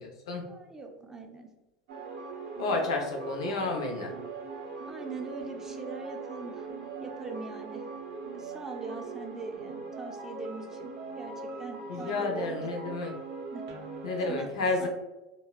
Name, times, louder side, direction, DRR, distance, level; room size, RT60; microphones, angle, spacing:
voice 1, 0.5-1.5 4.8-6.7 7.0-7.8 8.3-12.7 13.5-13.7 14.3-14.9, right 3 dB, 15° right, 3 dB, 0.4 m, -42 dB
sound 1, 1.9-14.3, right 4 dB, 75° right, 0.5 m, -40 dB
voice 2, 2.6-4.1 11.9-13.1 14.0-14.9, left 3 dB, 85° left, 2 dB, 0.5 m, -30 dB
2.9 x 2.0 x 2.3 m, 1.0 s
hypercardioid pair, 100°, 3 cm